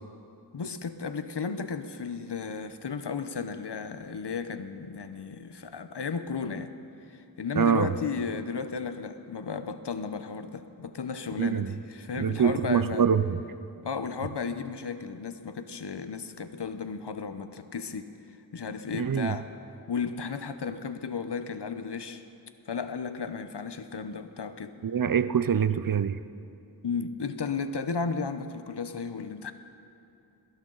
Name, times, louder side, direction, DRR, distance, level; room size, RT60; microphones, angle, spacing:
voice 1, 0.5-6.7 7.1-13.0 13.8-18.1 18.5-19.5 19.9-22.2 22.7-24.8 26.8-29.5, left 5 dB, 80° left, 10 dB, 0.9 m, -34 dB
voice 2, 7.6-7.9 11.4-11.8 12.2-13.4 18.9-19.4 24.8-26.2, right 7 dB, 55° right, 14 dB, 0.6 m, -25 dB
21.5 x 16.0 x 3.9 m, 2.7 s
wide cardioid pair, 45°, 41 cm